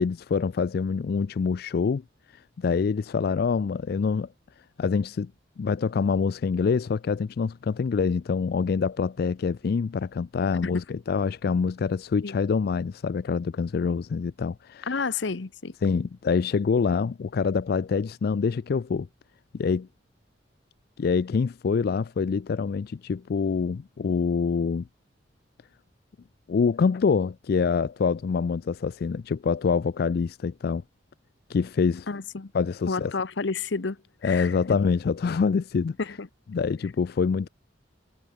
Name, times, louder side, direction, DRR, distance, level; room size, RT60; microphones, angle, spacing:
voice 1, 0.0-2.0 2.3-4.3 4.8-5.3 5.6-14.9 15.8-19.1 19.5-19.9 21.0-24.9 26.5-30.8 31.5-32.1 32.5-33.1 34.2-36.0 36.5-37.5, left 5 dB, 55° left, 0.4 m, -25 dB
voice 2, 14.9-15.7 32.1-32.5 32.9-34.5 36.0-36.3, left 4 dB, 75° left, 0.8 m, -30 dB
head